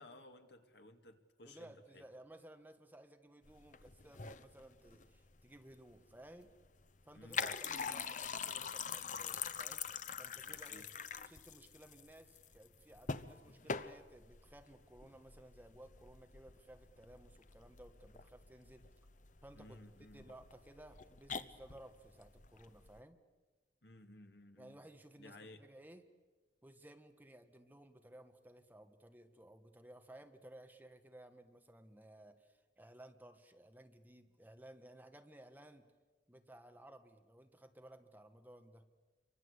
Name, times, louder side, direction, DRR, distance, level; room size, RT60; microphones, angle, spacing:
voice 1, 0.0-2.0 7.1-7.5 10.5-10.8 19.5-20.3 23.8-24.8 25.2-25.6, left 1 dB, 70° left, 6 dB, 2.3 m, -57 dB
voice 2, 1.4-6.5 7.0-9.9 10.2-10.9 11.2-18.9 19.4-19.8 20.1-23.2 24.6-26.0 26.6-35.8 36.3-38.8, right 1 dB, 10° right, 6 dB, 1.4 m, -58 dB
sound 1, 3.4-23.0, left 6 dB, 45° left, 0.9 m, -45 dB
28.5 x 24.0 x 8.2 m, 1.3 s
head